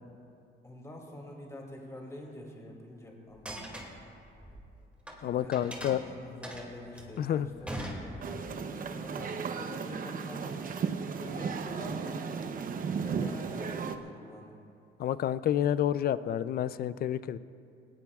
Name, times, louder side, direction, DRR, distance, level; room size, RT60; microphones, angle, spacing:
voice 1, 0.6-3.7 5.2-10.6 11.1-12.3 12.9-14.6, left 1 dB, 15° left, -1 dB, 2.6 m, -46 dB
sound 1, 3.3-5.2 5.5-8.6, right 1 dB, 5° right, 2.3 m, -41 dB
voice 2, 5.2-6.0 7.2-7.5 15.0-17.4, left 10 dB, 50° left, 15 dB, 0.4 m, -29 dB
sound 2, 8.2-14.0, right 6 dB, 45° right, 0.8 m, -35 dB
20.5 x 19.0 x 2.4 m, 2.6 s
cardioid pair, 125°, 20 cm